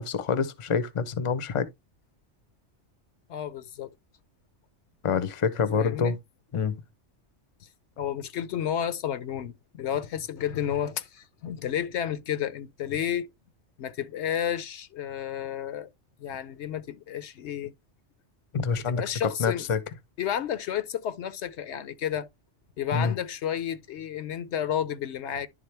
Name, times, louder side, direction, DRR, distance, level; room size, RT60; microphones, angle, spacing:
voice 1, 0.0-1.7 5.0-6.2 6.5-6.8 18.5-19.8 22.9-23.1, left 6 dB, 35° left, 0.6 m, -26 dB
voice 2, 3.3-3.9 5.7-6.2 7.6-7.7 8.0-13.3 13.8-15.9 16.2-17.7 19.0-19.7 20.2-22.3 22.8-25.5, left 9 dB, 70° left, 0.9 m, -31 dB
11.0 x 3.6 x 3.3 m
omnidirectional pair, 1.2 m